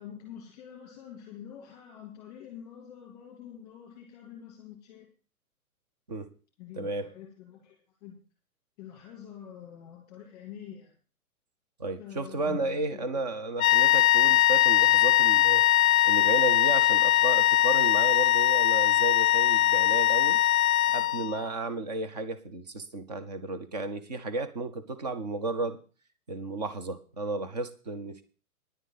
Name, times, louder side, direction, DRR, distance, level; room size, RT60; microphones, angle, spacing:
voice 1, 0.0-5.1 6.6-8.2 8.8-10.9 12.0-13.2, left 9 dB, 15° left, 2.7 m, -46 dB
voice 2, 6.8-7.1 11.8-15.6 16.0-20.4 20.9-25.8 26.3-28.2, right 3 dB, 30° right, 0.8 m, -33 dB
sound 1, 13.6-21.5, left 14 dB, 70° left, 0.5 m, -21 dB
10.5 x 7.6 x 7.3 m
hypercardioid pair, 180°, 44 cm